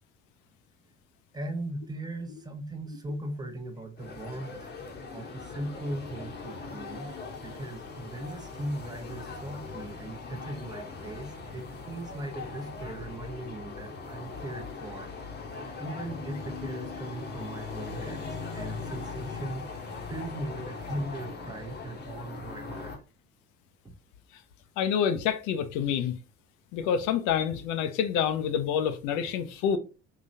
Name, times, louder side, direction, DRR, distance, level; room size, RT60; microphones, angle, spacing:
voice 1, 1.3-4.7 5.1-7.1 7.4-15.1 15.8-23.0, right 1 dB, 10° right, 0.8 m, -38 dB
sound 1, 4.0-23.0, left 4 dB, 25° left, 0.9 m, -40 dB
voice 2, 24.8-26.2 26.7-29.8, left 8 dB, 50° left, 0.6 m, -27 dB
3.8 x 2.9 x 2.6 m
figure-of-eight pair, 55°, 38 cm